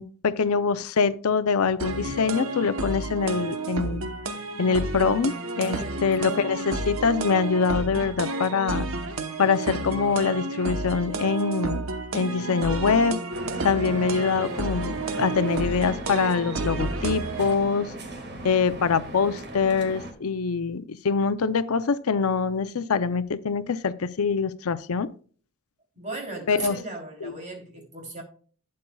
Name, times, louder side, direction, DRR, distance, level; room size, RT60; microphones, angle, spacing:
voice 1, 0.0-4.0 4.6-8.9 9.4-11.8 12.1-13.2 13.6-17.9 18.4-25.1 26.5-26.8 27.2-27.3, left 5 dB, 70° left, 0.6 m, -24 dB
sound 1, 1.8-17.5, right 3 dB, 65° right, 1.0 m, -31 dB
voice 2, 5.6-6.0 25.9-28.2, right 2 dB, 35° right, 3.1 m, -37 dB
sound 2, 13.3-20.1, right 1 dB, 50° right, 1.9 m, -38 dB
12.0 x 8.6 x 2.3 m
head